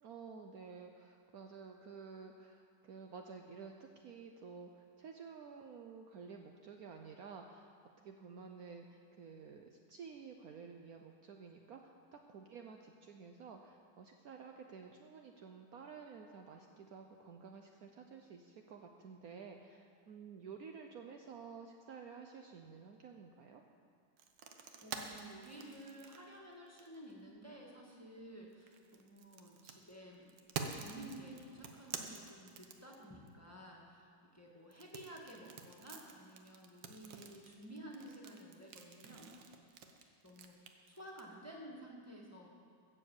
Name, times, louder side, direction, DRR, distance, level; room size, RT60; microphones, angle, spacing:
voice 1, 0.0-7.7 8.0-23.6, right 5 dB, 65° right, 3 dB, 1.1 m, -52 dB
sound 1, 24.2-27.1 28.5-33.3 34.7-41.2, right 6 dB, 80° right, 1.6 m, -48 dB
voice 2, 24.5-30.3 30.8-39.3 40.2-40.6 40.9-42.5, right 1 dB, 10° left, -2 dB, 1.6 m, -53 dB
16.0 x 7.0 x 7.1 m, 2.2 s
omnidirectional pair, 1.9 m